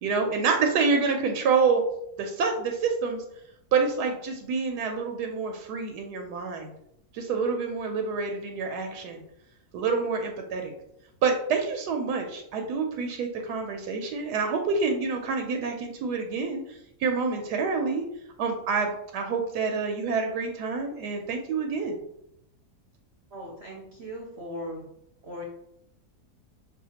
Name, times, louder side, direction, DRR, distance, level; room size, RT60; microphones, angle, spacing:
voice 1, 0.0-1.8 2.2-3.2 3.7-6.7 7.1-9.2 9.7-10.7 11.2-16.6 17.0-18.0 18.4-22.0, right 5 dB, 80° right, 4 dB, 1.1 m, -27 dB
voice 2, 23.3-24.9 25.2-25.4, equal, 55° right, -2 dB, 0.8 m, -38 dB
6.2 x 2.4 x 2.8 m, 0.77 s
omnidirectional pair, 1.7 m